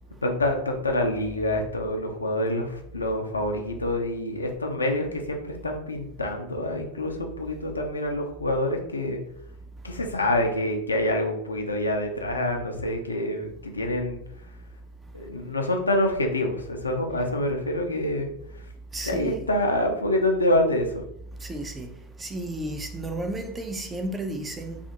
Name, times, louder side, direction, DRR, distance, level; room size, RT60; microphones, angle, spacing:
voice 1, 0.2-9.2 9.8-14.2 15.1-18.3 19.0-21.0, left 1 dB, 85° left, 0.4 m, -26 dB
voice 2, 18.9-19.5 21.4-21.9 22.2-24.8, right 1 dB, 15° right, 0.5 m, -32 dB
2.4 x 2.4 x 2.7 m
figure-of-eight pair, 80°, 0 cm